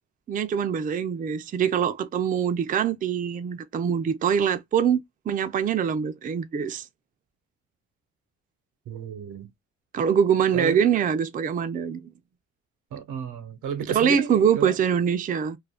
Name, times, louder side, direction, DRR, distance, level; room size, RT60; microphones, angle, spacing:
voice 1, 0.3-6.9 9.9-12.1 13.9-15.6, right 8 dB, 30° right, 0.4 m, -24 dB
voice 2, 8.9-9.5 10.5-10.8 12.9-14.7, right 8 dB, 85° right, 0.8 m, -32 dB
2.4 x 2.2 x 3.3 m
cardioid pair, 90°, 30 cm